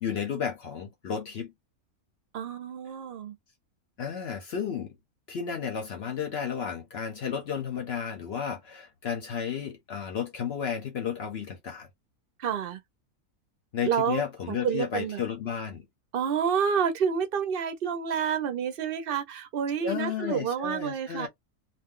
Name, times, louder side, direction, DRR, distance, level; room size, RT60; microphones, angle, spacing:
voice 1, 0.0-1.5 4.0-4.9 5.3-11.9 13.7-15.9 19.8-21.3, left 7 dB, 55° left, 0.7 m, -33 dB
voice 2, 2.3-3.4 12.4-12.8 13.8-15.2 16.1-21.3, right 7 dB, 55° right, 0.7 m, -29 dB
2.5 x 2.2 x 3.6 m
omnidirectional pair, 1.5 m